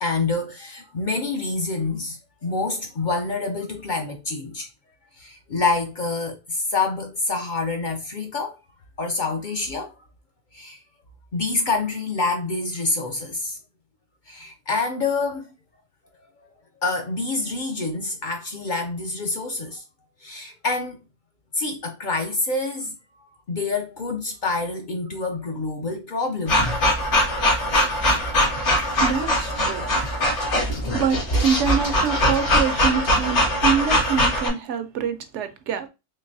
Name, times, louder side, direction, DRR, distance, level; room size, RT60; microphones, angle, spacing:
voice 1, 0.0-4.7 5.2-8.6 9.0-9.9 10.5-10.8 11.3-13.6 14.3-15.5 16.8-19.8 20.2-21.0 21.5-22.9 23.5-26.7, left 3 dB, 55° left, 0.6 m, -27 dB
sound 1, 26.5-34.5, left 1 dB, 70° left, 1.7 m, -21 dB
voice 2, 29.0-29.8 30.9-35.9, right 6 dB, 75° right, 0.9 m, -25 dB
3.8 x 3.2 x 2.6 m
omnidirectional pair, 1.2 m